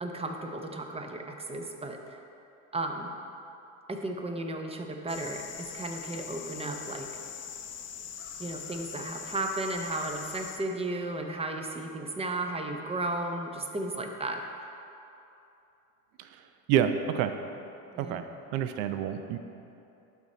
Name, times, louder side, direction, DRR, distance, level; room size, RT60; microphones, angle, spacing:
voice 1, 0.0-2.2 2.7-3.1 3.9-7.1 8.4-14.4 17.9-18.2, right 2 dB, 15° right, 3 dB, 0.7 m, -34 dB
sound 1, 5.1-10.6, left 8 dB, 35° left, 0.7 m, -42 dB
voice 2, 16.7-17.3 18.0-18.3 18.5-19.4, right 9 dB, 75° right, 9 dB, 0.7 m, -28 dB
12.0 x 4.2 x 4.2 m, 2.8 s
supercardioid pair, 100°, 42 cm